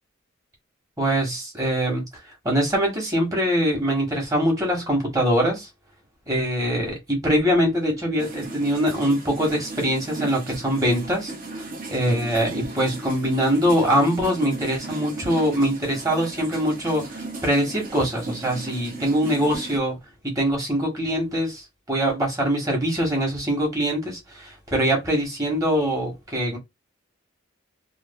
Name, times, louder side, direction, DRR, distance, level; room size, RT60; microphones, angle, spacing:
voice 1, 1.0-2.1 2.4-5.7 6.3-11.3 11.6-20.0 20.2-21.6 21.9-26.6, equal, 15° right, 1.1 m, -23 dB
sound 1, 8.2-19.8, right 3 dB, 45° right, 0.7 m, -36 dB
3.0 x 2.2 x 2.2 m
head